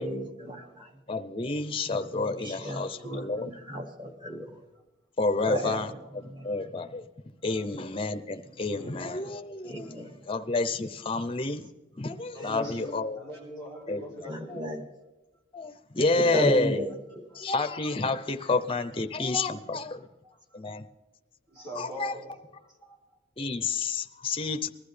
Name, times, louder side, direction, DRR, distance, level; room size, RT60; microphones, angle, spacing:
voice 1, 0.0-1.0 1.9-4.6 5.5-5.8 6.2-6.7 8.4-8.9 9.6-10.2 12.3-12.5 14.3-14.8 15.9-17.3, equal, 25° right, 4 dB, 1.5 m, -34 dB
voice 2, 1.1-3.5 5.2-5.9 6.2-7.1 7.4-11.7 12.0-13.2 13.9-14.0 14.5-14.6 15.5-16.8 17.4-20.1 20.5-20.9 21.8-22.1 23.4-24.7, left 3 dB, 25° left, 9 dB, 0.6 m, -29 dB
voice 3, 2.0-3.8 5.3-5.8 6.4-6.6 7.4-7.7 12.3-14.6 17.3-17.4 20.2-20.6 21.5-22.3 22.8-23.2, right 1 dB, 55° right, -3 dB, 6.4 m, -43 dB
20.5 x 13.0 x 3.3 m, 1.1 s
head